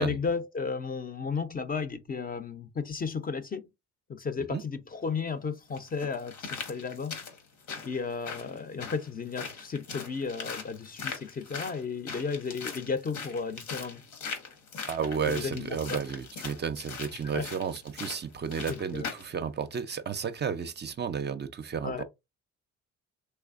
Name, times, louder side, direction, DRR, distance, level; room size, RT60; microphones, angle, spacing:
voice 1, 0.0-3.7 4.1-7.2 7.8-14.0 15.3-16.0 17.3-17.5 18.7-19.1 21.8-22.0, left 5 dB, 30° left, 0.5 m, -34 dB
sound 1, 4.9-5.0 5.7-19.3 19.7-19.8, left 5 dB, 80° left, 1.3 m, -41 dB
voice 2, 14.9-22.0, right 6 dB, 35° right, 0.5 m, -32 dB
3.3 x 3.2 x 2.4 m
cardioid pair, 90°, 30 cm